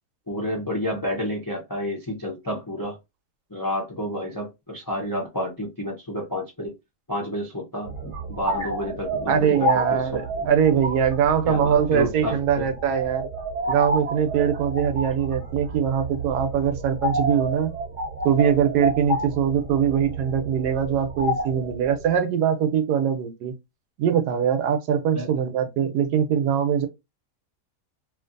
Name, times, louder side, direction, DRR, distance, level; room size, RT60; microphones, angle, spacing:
voice 1, 0.3-3.0 3.5-6.7 7.1-10.5 11.4-12.6 25.1-25.3, left 1 dB, 35° left, 0.3 m, -30 dB
sound 1, 7.8-22.2, right 1 dB, 45° right, 0.7 m, -30 dB
voice 2, 9.3-13.3 13.7-17.7 18.2-23.5 24.0-26.9, right 8 dB, 75° right, 1.1 m, -22 dB
2.7 x 2.5 x 2.5 m
omnidirectional pair, 1.7 m